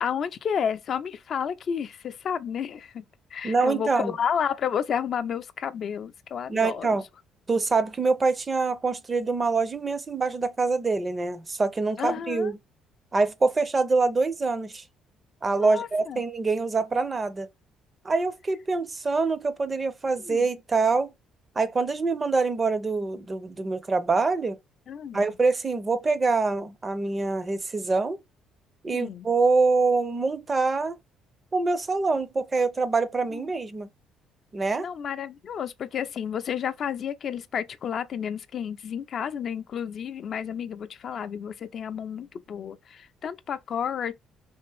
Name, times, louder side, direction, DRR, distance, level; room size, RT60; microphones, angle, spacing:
voice 1, 0.0-3.0 3.3-7.0 12.0-12.5 15.6-16.2 20.2-20.5 24.9-25.3 28.9-29.3 33.3-33.5 34.8-44.1, left 8 dB, 55° left, 0.3 m, -31 dB
voice 2, 3.4-4.1 6.5-7.0 7.5-12.6 13.1-14.8 15.4-17.5 18.0-21.1 21.6-24.6 25.1-28.2 28.8-31.0 31.5-33.9 34.5-34.9, right 3 dB, 25° right, 0.5 m, -25 dB
3.4 x 2.5 x 3.3 m
cardioid pair, 95°, 0 cm